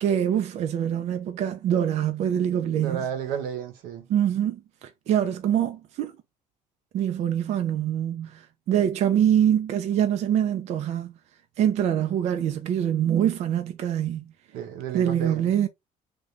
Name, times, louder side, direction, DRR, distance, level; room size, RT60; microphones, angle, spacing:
voice 1, 0.0-3.1 4.1-6.1 6.9-11.1 11.6-14.3 14.9-15.7, right 10 dB, 50° right, 0.4 m, -24 dB
voice 2, 2.8-4.1 14.5-15.5, right 8 dB, 85° right, 1.2 m, -32 dB
3.8 x 2.2 x 3.3 m
cardioid pair, 155°, 14 cm